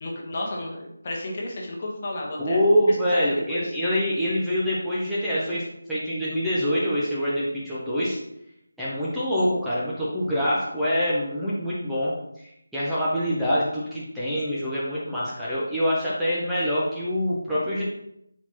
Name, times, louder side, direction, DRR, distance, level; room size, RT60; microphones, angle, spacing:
voice 1, 0.0-3.2 3.5-3.7, left 1 dB, 35° left, -1 dB, 1.0 m, -33 dB
voice 2, 2.4-8.2 8.8-17.8, equal, ahead, -11 dB, 0.7 m, -25 dB
4.2 x 4.1 x 2.9 m, 0.79 s
figure-of-eight pair, 165°, 0 cm